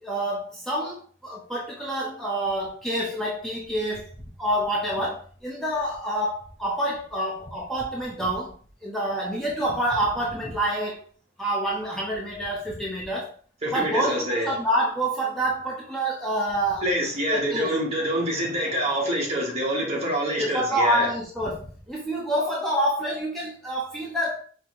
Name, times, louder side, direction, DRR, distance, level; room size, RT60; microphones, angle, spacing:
voice 1, 0.0-4.1 4.4-8.5 8.8-11.0 11.4-13.3 13.7-16.8 17.3-17.7 20.4-24.4, right 1 dB, ahead, 0.7 m, -27 dB
voice 2, 13.6-14.5 16.8-21.1, equal, 35° right, 1.4 m, -26 dB
5.2 x 2.8 x 2.9 m
head